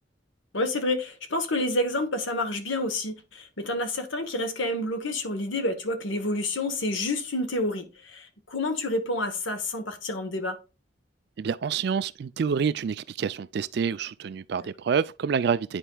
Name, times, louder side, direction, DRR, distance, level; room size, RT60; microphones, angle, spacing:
voice 1, 0.5-10.6, left 1 dB, 85° left, 1.1 m, -29 dB
voice 2, 11.4-15.8, right 6 dB, 60° right, 0.3 m, -27 dB
10.0 x 4.4 x 2.3 m
head